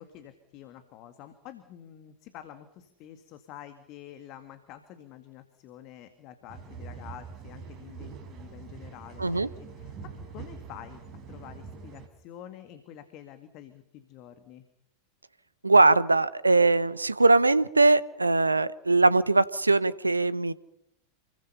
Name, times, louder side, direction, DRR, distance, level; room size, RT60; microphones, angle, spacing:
voice 1, 0.0-11.0 11.3-14.7, left 11 dB, 40° left, 9 dB, 2.1 m, -48 dB
sound 1, 6.5-12.1, right 5 dB, 35° right, 4.9 m, -44 dB
voice 2, 15.6-20.5, right 3 dB, 80° right, 19 dB, 0.9 m, -21 dB
28.5 x 21.5 x 5.7 m, 0.79 s
figure-of-eight pair, 90°, 0 cm